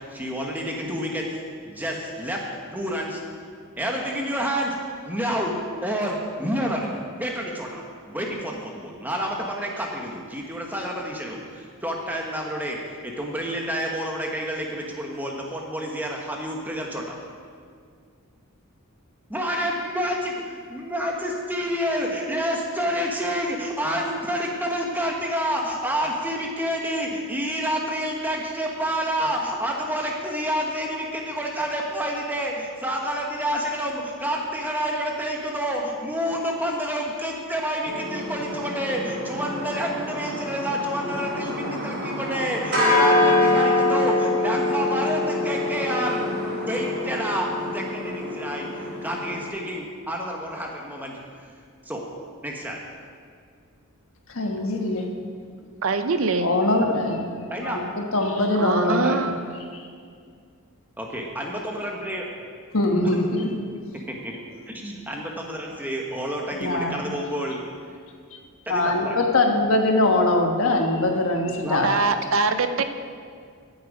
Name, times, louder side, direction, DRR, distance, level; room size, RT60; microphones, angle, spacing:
voice 1, 0.1-1.3 1.6-2.4 2.7-3.2 3.8-4.8 5.0-5.5 5.8-17.2 19.3-47.5 47.7-51.2 51.8-52.0 52.4-52.8 56.9-57.0 57.5-57.8 58.8-59.2 61.0-62.3 63.0-63.1 64.1-64.3 64.7-67.6 68.7-69.2 71.6-71.9, equal, 10° right, -1 dB, 1.3 m, -29 dB
sound 1, 37.8-49.5, left 2 dB, 50° right, 3.4 m, -25 dB
voice 2, 54.3-55.1 56.4-57.3 57.6-59.4 59.7-59.8 62.7-63.5 66.6-67.1 68.7-72.0, left 2 dB, 70° left, 3 dB, 1.4 m, -22 dB
voice 3, 55.8-56.5 58.5-59.4 71.8-72.8, right 4 dB, 65° right, 9 dB, 0.6 m, -23 dB
14.0 x 8.0 x 4.9 m, 2.2 s
head